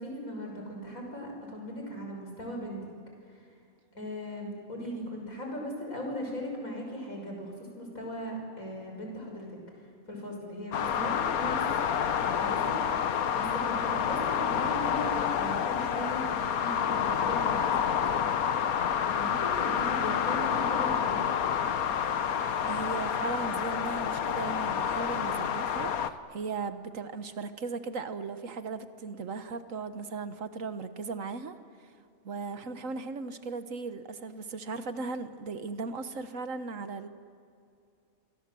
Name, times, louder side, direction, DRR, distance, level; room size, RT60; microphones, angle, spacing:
voice 1, 0.0-2.8 3.3-3.5 3.9-11.6 12.2-18.6 19.0-21.2, equal, 70° left, 1 dB, 6.4 m, -38 dB
sound 1, 10.7-26.1, left 8 dB, 90° left, 1.4 m, -29 dB
voice 2, 22.7-31.9 32.2-37.1, right 4 dB, 65° right, 10 dB, 1.6 m, -37 dB
29.5 x 24.0 x 7.7 m, 2.5 s
omnidirectional pair, 1.5 m